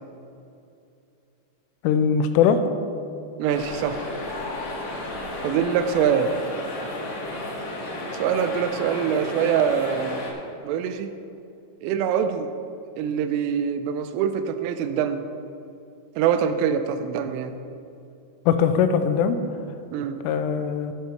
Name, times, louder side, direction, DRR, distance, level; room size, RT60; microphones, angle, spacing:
voice 1, 1.8-2.6 18.5-19.4 20.2-20.9, left 7 dB, 90° left, 9 dB, 3.2 m, -20 dB
voice 2, 3.4-4.0 5.4-6.3 8.2-10.2 10.6-11.1 11.8-12.5 13.0-15.3 16.2-17.6 19.9-20.2, right 8 dB, 85° right, 9 dB, 3.1 m, -24 dB
sound 1, 3.5-10.3, left 1 dB, 65° left, 1.9 m, -33 dB
11.5 x 9.7 x 4.5 m, 2.6 s
omnidirectional pair, 5.7 m